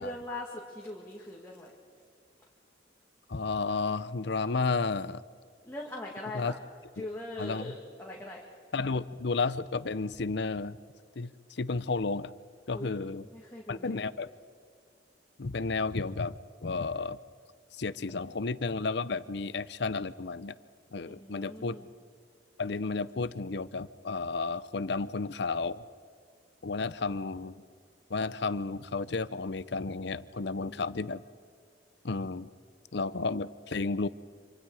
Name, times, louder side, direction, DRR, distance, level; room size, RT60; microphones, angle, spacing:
voice 1, 0.0-1.7 5.6-6.5 7.0-8.4 12.7-12.9 13.3-14.0 21.1-21.9 30.6-30.9, left 1 dB, 15° left, -3 dB, 2.2 m, -41 dB
voice 2, 3.3-5.2 6.3-6.5 7.0-7.1 7.4-7.7 8.7-10.8 11.2-12.3 12.7-13.3 13.7-14.3 15.4-17.2 17.7-20.5 20.9-21.8 22.6-25.8 26.6-27.5 28.1-31.2 32.0-32.5 32.9-34.1, left 4 dB, 65° left, 16 dB, 0.7 m, -32 dB
26.5 x 25.5 x 4.9 m, 2.1 s
head